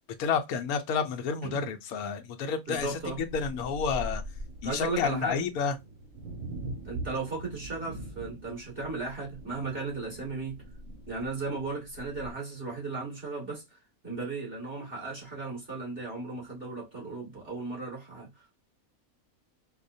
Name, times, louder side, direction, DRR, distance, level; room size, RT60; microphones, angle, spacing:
voice 1, 0.2-3.0 3.3-4.2 4.6-5.7, left 6 dB, 85° left, 1.1 m, -30 dB
voice 2, 2.7-3.2 4.6-5.4 6.8-10.6 11.1-18.5, right 3 dB, 40° right, 2.4 m, -36 dB
sound 1, 2.7-12.3, right 1 dB, 65° right, 1.3 m, -42 dB
4.7 x 2.2 x 2.6 m
omnidirectional pair, 1.5 m